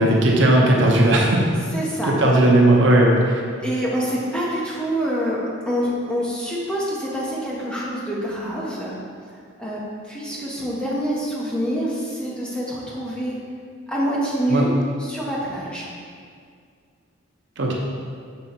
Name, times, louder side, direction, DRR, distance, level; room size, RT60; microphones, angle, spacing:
voice 1, 0.0-1.4 2.0-3.4 14.5-14.6 17.6-17.7, right 1 dB, 60° right, -2 dB, 0.9 m, -16 dB
voice 2, 1.7-2.4 3.6-5.4 5.6-9.0 9.6-9.8 10.1-13.4 13.9-14.7 15.0-15.9, equal, 5° left, -6 dB, 0.9 m, -26 dB
6.6 x 3.8 x 4.4 m, 2.1 s
head